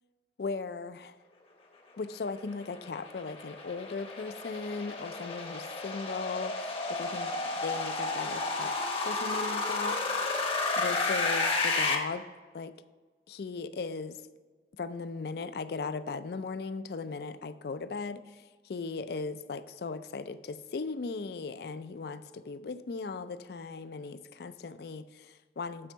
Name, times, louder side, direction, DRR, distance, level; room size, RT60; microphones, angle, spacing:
voice 1, 0.4-1.2 2.0-10.3 10.8-12.2 12.5-12.7 13.3-14.2 14.8-25.9, left 4 dB, 65° left, 13 dB, 0.4 m, -38 dB
sound 1, 2.4-11.9, left 3 dB, 30° left, 0.8 m, -32 dB
8.7 x 4.4 x 5.6 m, 1.4 s
head